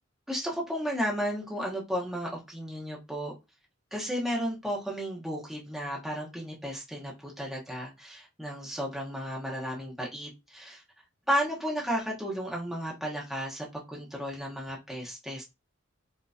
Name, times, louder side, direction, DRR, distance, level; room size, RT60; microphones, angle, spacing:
voice 1, 0.3-3.3 3.9-10.8 11.3-15.4, equal, ahead, 1.0 m, -33 dB
5.2 x 2.9 x 2.4 m
head